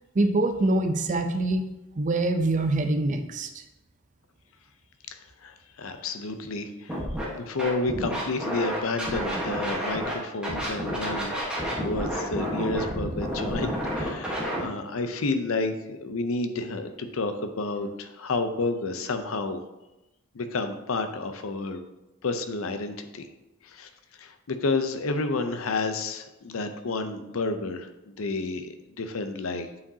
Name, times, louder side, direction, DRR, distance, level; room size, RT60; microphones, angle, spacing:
voice 1, 0.1-1.6 2.0-3.6, right 2 dB, 35° right, 8 dB, 0.4 m, -24 dB
voice 2, 5.1-7.0 7.3-11.4 11.8-19.6 20.3-21.8 22.2-23.3 23.6-23.9 24.2-29.7, left 3 dB, 75° left, 8 dB, 0.6 m, -30 dB
Scratching (performance technique), 6.9-7.2 7.6-10.1 10.4-14.6, equal, 5° right, 1.1 m, -30 dB
8.3 x 4.9 x 2.7 m, 0.98 s
head